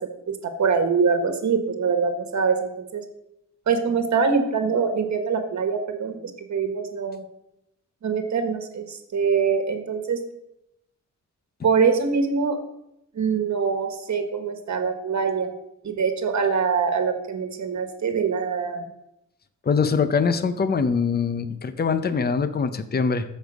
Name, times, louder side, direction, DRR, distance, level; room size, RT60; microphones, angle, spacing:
voice 1, 0.3-3.0 3.7-6.2 6.5-7.2 8.0-10.2 11.6-12.6 13.1-15.5 15.8-18.9, right 5 dB, 65° right, 7 dB, 1.4 m, -24 dB
voice 2, 19.7-23.2, left 5 dB, 30° left, 11 dB, 0.6 m, -23 dB
14.0 x 5.3 x 6.1 m, 0.84 s
wide cardioid pair, 175°, 31 cm